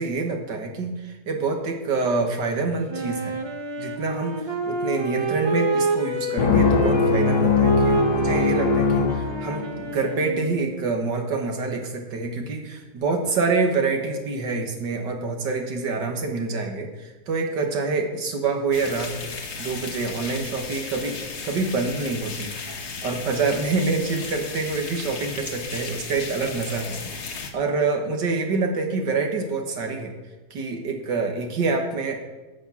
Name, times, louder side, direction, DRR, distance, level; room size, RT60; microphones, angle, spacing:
voice 1, 0.0-3.4 3.8-19.3 19.6-22.5 23.0-27.1 27.5-30.1 30.5-32.2, right 4 dB, 70° right, 3 dB, 2.1 m, -26 dB
Wind instrument woodwind instrument, 2.9-10.9, right 3 dB, 30° right, 0.5 m, -28 dB
sound 1, 6.4-9.9, left 5 dB, 65° left, 1.5 m, -21 dB
sound 2, 18.7-27.5, left 4 dB, 45° left, 1.2 m, -35 dB
14.5 x 6.2 x 6.0 m, 1.2 s
omnidirectional pair, 2.0 m